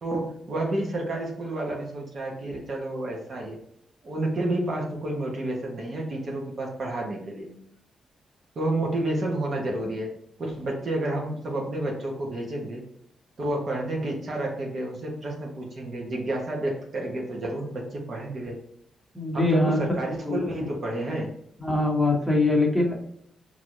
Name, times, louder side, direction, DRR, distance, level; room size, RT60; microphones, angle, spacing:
voice 1, 0.0-3.6 4.0-7.5 8.5-10.1 10.4-12.8 13.4-18.6 19.3-21.3, right 1 dB, 55° right, -1 dB, 1.2 m, -30 dB
voice 2, 19.1-19.8 20.2-20.5 21.6-23.0, left 2 dB, ahead, -3 dB, 1.5 m, -23 dB
4.5 x 3.0 x 2.6 m, 0.72 s
cardioid pair, 75°, 0 cm